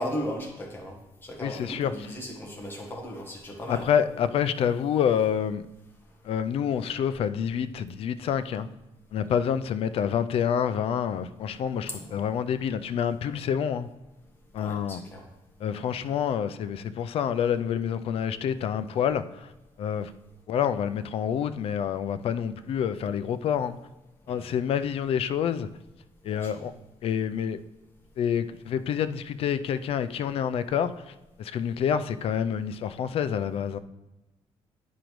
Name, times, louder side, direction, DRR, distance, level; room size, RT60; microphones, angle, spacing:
voice 1, 0.0-3.9 11.9-12.2 14.6-15.2 24.3-24.5 26.3-26.6, equal, 20° left, 0 dB, 1.2 m, -36 dB
voice 2, 1.4-1.9 3.7-5.6 6.2-8.7 9.1-13.9 14.5-15.0 15.6-19.5 19.8-20.1 20.5-23.8 24.3-25.7 26.2-26.7 27.0-27.6 28.2-33.8, left 8 dB, 60° left, 12 dB, 0.4 m, -27 dB
10.0 x 5.1 x 3.1 m, 1.0 s
cardioid pair, 150°, 11 cm